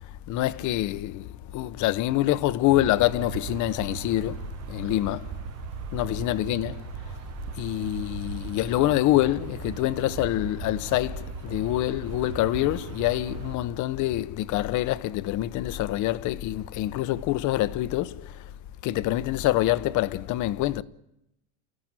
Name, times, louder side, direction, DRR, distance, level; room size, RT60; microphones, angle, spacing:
voice 1, 0.3-1.3 1.5-4.4 4.7-5.3 5.9-6.7 7.6-18.1 18.8-20.8, left 15 dB, 40° left, 0.9 m, -26 dB
sound 1, 2.6-13.6, right 12 dB, 35° right, 0.8 m, -39 dB
29.0 x 15.5 x 8.9 m
supercardioid pair, 135°, 45 cm